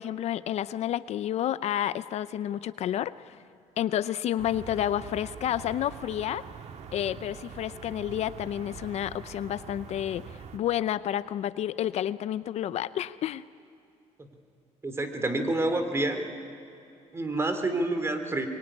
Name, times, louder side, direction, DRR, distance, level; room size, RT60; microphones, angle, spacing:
voice 1, 0.0-3.4 3.8-6.4 6.9-13.4, left 11 dB, 60° left, 15 dB, 0.6 m, -30 dB
sound 1, 4.4-10.6, right 7 dB, 60° right, 1.9 m, -44 dB
voice 2, 14.8-16.3 17.1-18.5, right 2 dB, 20° right, 7 dB, 2.9 m, -28 dB
23.5 x 23.0 x 9.9 m, 2.7 s
cardioid pair, 110°, 12 cm